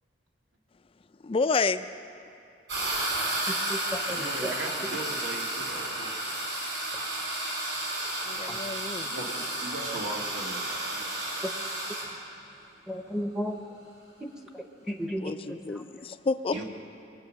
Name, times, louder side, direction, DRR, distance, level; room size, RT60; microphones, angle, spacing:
voice 1, 1.2-1.9 8.3-9.1 15.2-16.5, left 4 dB, 30° left, 12 dB, 0.4 m, -29 dB
sound 1, 2.7-12.1, right 1 dB, 65° right, 4.0 m, -32 dB
voice 2, 3.5-4.3 8.5-8.6 12.9-13.5 14.2-14.3 14.5-15.6, equal, 5° right, 3 dB, 0.8 m, -34 dB
voice 3, 4.1-6.2 9.0-11.4 16.5-16.6, right 1 dB, 80° right, 0 dB, 2.2 m, -38 dB
22.5 x 8.1 x 6.5 m, 2.8 s
head